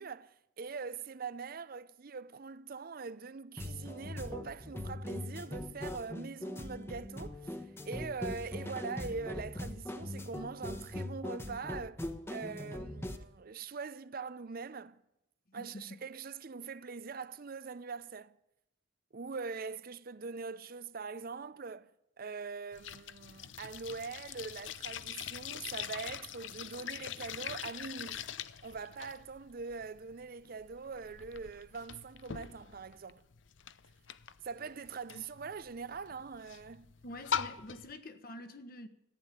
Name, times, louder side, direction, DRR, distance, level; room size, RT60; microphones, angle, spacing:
voice 1, 0.0-15.0 15.5-18.4 19.1-21.9 22.2-28.3 28.6-33.2 34.4-36.9, right 4 dB, 50° right, 0.6 m, -43 dB
sound 1, 3.6-13.2, left 1 dB, 15° left, 1.1 m, -41 dB
sound 2, 22.7-37.9, left 8 dB, 75° left, 0.7 m, -43 dB
voice 2, 37.0-38.9, left 1 dB, 50° left, 1.4 m, -46 dB
14.5 x 9.9 x 9.1 m
head